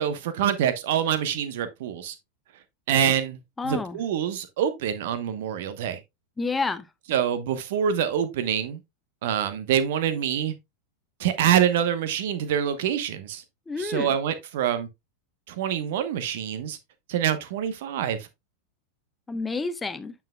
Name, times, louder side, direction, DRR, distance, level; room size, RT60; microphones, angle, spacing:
voice 1, 0.0-2.1 2.9-6.0 7.1-8.8 9.2-10.5 11.2-13.4 13.8-14.9 15.5-16.8 17.1-18.3, right 9 dB, 55° right, 1.0 m, -26 dB
voice 2, 3.6-4.0 6.4-6.8 13.7-14.1 19.3-20.1, left 3 dB, 10° left, 0.7 m, -29 dB
8.9 x 5.7 x 2.3 m
figure-of-eight pair, 90°, 0 cm